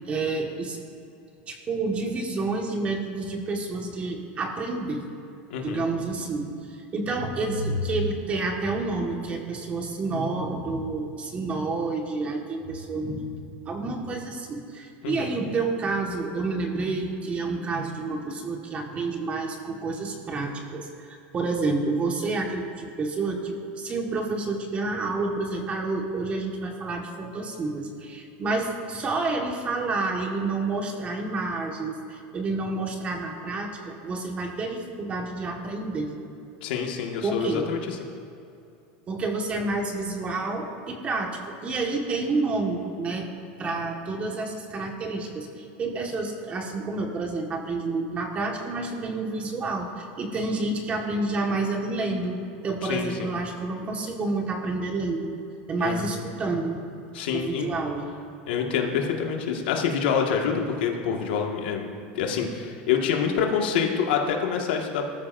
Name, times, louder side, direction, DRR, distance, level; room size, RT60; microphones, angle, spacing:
voice 1, 0.1-0.8 1.5-5.0 5.6-13.2 13.6-20.9 21.3-36.1 37.2-37.6 39.1-43.3 43.6-52.4 52.6-55.3 55.7-56.9 57.3-58.1, right 3 dB, 25° right, 2 dB, 1.7 m, -29 dB
voice 2, 5.5-5.9 15.0-15.4 36.6-38.0 52.8-53.3 55.8-56.1 57.1-57.7 58.5-61.9 62.1-65.1, left 7 dB, 85° left, 1 dB, 1.8 m, -26 dB
19.5 x 13.0 x 2.7 m, 2.7 s
supercardioid pair, 145°, 5 cm